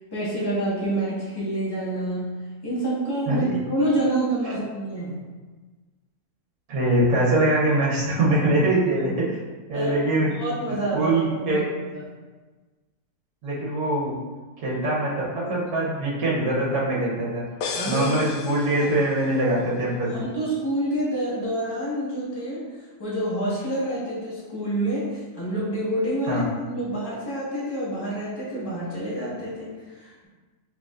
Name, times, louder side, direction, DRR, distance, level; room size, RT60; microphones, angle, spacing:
voice 1, 0.1-5.2 9.7-9.9 10.4-11.6 11.9-12.0 17.7-18.1 18.8-18.9 20.1-22.7 23.0-30.3, right 1 dB, 15° left, -8 dB, 1.1 m, -27 dB
voice 2, 6.7-9.4 9.7-10.3 10.9-11.6 13.4-14.1 14.6-17.4 17.9-20.2 26.3-26.4, right 1 dB, 60° right, -5 dB, 1.3 m, -23 dB
sound 1, 17.6-19.4, left 4 dB, 85° left, 1.2 m, -34 dB
5.0 x 3.2 x 2.4 m, 1.3 s
omnidirectional pair, 1.7 m